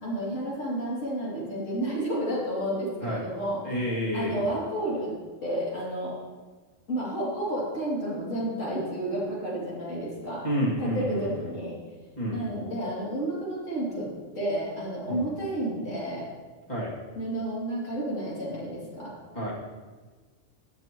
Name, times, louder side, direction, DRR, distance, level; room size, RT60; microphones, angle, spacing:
voice 1, 0.0-3.6 4.1-5.1 5.4-6.1 6.9-10.4 10.8-11.7 12.3-14.1 14.3-16.3 17.2-19.1, right 1 dB, 80° left, -6 dB, 3.0 m, -31 dB
voice 2, 3.6-4.4 10.4-11.5 12.2-12.5 15.1-15.3 16.7-16.9 19.3-19.5, equal, 35° left, -6 dB, 2.5 m, -29 dB
14.5 x 8.0 x 3.0 m, 1.4 s
omnidirectional pair, 1.3 m